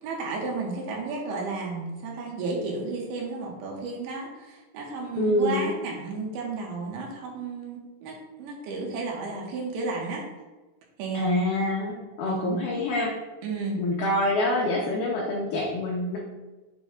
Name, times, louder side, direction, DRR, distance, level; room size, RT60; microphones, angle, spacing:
voice 1, 0.0-10.2 11.0-11.3 12.2-12.7 13.4-13.8, right 3 dB, 75° right, -2 dB, 3.3 m, -33 dB
voice 2, 5.2-5.7 11.1-13.2 13.8-16.2, left 1 dB, 80° left, -2 dB, 2.2 m, -26 dB
9.3 x 6.9 x 2.4 m, 1.2 s
omnidirectional pair, 5.6 m